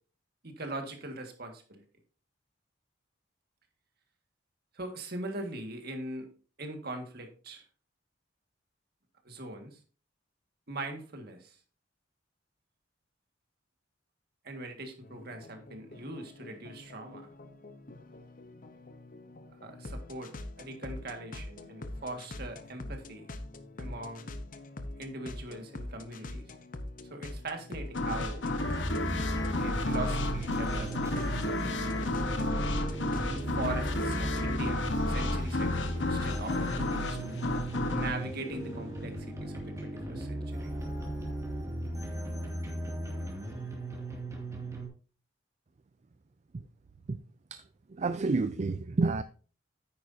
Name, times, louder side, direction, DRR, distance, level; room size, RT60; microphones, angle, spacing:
voice 1, 0.4-1.8 4.7-6.3 6.6-7.6 9.2-9.8 10.7-11.6 14.4-17.3 19.6-23.3 23.8-24.3 25.0-26.4 27.0-28.4 29.5-31.7 33.5-37.4 37.9-40.7, right 2 dB, 55° right, 1.9 m, -41 dB
sound 1, 15.0-34.6, left 1 dB, 45° left, 0.8 m, -44 dB
sound 2, 27.9-39.4, left 2 dB, 75° left, 1.2 m, -32 dB
sound 3, 28.6-44.9, right 1 dB, 15° right, 2.2 m, -37 dB
voice 2, 47.9-49.2, right 3 dB, 40° right, 0.4 m, -29 dB
9.6 x 8.9 x 2.7 m
head